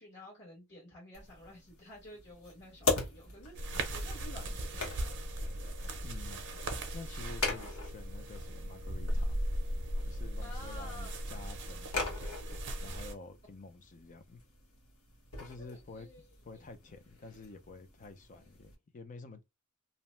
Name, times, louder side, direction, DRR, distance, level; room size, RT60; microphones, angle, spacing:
voice 1, 0.0-5.1 10.4-11.1 15.6-16.3, left 1 dB, 55° left, 1.3 m, -51 dB
sound 1, 1.1-18.8, left 4 dB, 90° left, 1.1 m, -42 dB
sound 2, 3.5-13.1, right 1 dB, 55° right, 0.6 m, -37 dB
voice 2, 6.0-6.4 6.9-9.4 10.0-12.2 12.8-14.4 15.4-16.1 16.4-19.4, left 3 dB, 35° left, 0.5 m, -49 dB
2.7 x 2.1 x 3.0 m
head